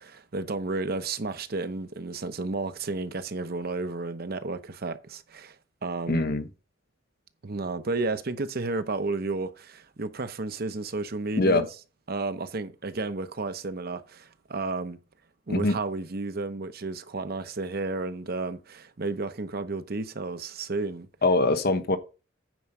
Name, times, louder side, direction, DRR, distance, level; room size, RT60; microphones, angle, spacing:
voice 1, 0.0-5.6 5.8-6.2 7.4-11.7 12.1-15.0 15.5-21.1, right 3 dB, 55° right, 0.9 m, -32 dB
voice 2, 6.1-6.4 11.4-11.7 15.5-15.8 21.2-22.0, left 2 dB, 55° left, 1.0 m, -23 dB
9.3 x 4.7 x 5.4 m
head